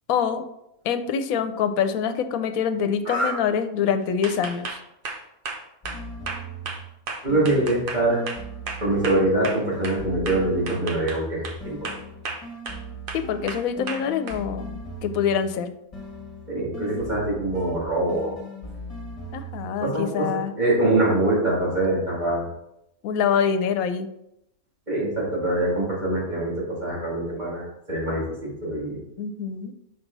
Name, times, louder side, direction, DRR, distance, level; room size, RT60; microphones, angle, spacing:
voice 1, 0.1-0.4 0.8-4.8 13.1-15.7 19.3-20.5 23.0-24.1 29.2-29.7, left 7 dB, 75° left, 9 dB, 1.0 m, -25 dB
sound 1, 4.2-10.0 10.3-11.6 11.8-12.8 13.1-14.4, right 3 dB, 50° right, 0.7 m, -34 dB
sound 2, 5.8-6.9 7.3-11.2 11.6-15.6 15.9-19.9, right 1 dB, 25° left, 1.1 m, -39 dB
voice 2, 7.2-8.2 8.8-11.9 16.5-18.3 19.8-20.3 20.6-22.4 24.9-29.0, right 1 dB, 30° right, -6 dB, 2.5 m, -24 dB
5.9 x 5.1 x 3.9 m, 0.81 s
omnidirectional pair, 1.5 m